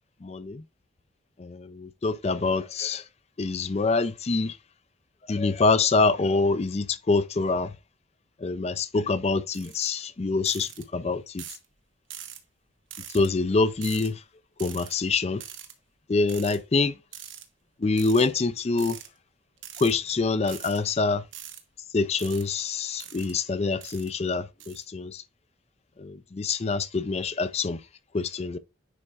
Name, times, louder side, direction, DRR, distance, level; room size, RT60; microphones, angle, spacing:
voice 1, 0.2-0.6 1.4-3.0 3.4-4.6 5.3-7.7 8.4-11.4 13.1-14.2 14.6-15.4 16.1-16.9 17.8-19.0 19.8-21.2 21.9-25.2 26.0-27.8 28.1-28.6, left 3 dB, 30° left, 0.4 m, -25 dB
sound 1, 9.5-9.9 10.4-10.8 11.4-11.6 12.1-12.4 12.9-13.3 13.8-14.1 14.6-14.9 15.4-15.7 16.3-16.6 17.1-17.4 18.0-18.3 18.8-19.1 19.6-19.9 20.4-20.8 21.3-21.6 22.2-22.4 23.0-23.3 23.8-24.1 24.6-24.8, right 10 dB, 75° right, 1.1 m, -42 dB
9.8 x 4.4 x 2.4 m
head